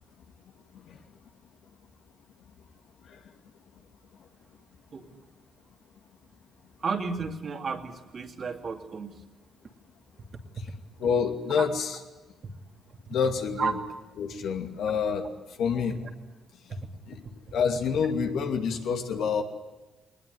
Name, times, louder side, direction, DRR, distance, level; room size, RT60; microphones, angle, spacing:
voice 1, 6.8-9.2 10.6-10.7 11.6-11.7 12.4-12.5 13.1-13.2 13.6-13.7 16.7-16.8, right 5 dB, 50° right, 3 dB, 2.7 m, -32 dB
voice 2, 11.0-12.0 13.1-13.8 14.2-15.3 15.6-16.0 17.1-17.2 17.5-19.4, left 6 dB, 75° left, 3 dB, 2.6 m, -27 dB
20.5 x 20.0 x 9.6 m, 1.2 s
cardioid pair, 90°, 0 cm